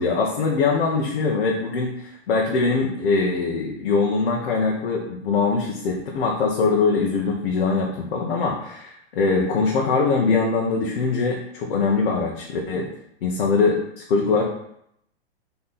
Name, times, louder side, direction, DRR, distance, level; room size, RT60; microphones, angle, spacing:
voice 1, 0.0-12.9 13.2-13.8 14.1-14.4, left 4 dB, 55° left, -1 dB, 1.1 m, -22 dB
5.8 x 4.2 x 4.1 m, 0.74 s
supercardioid pair, 170°, 34 cm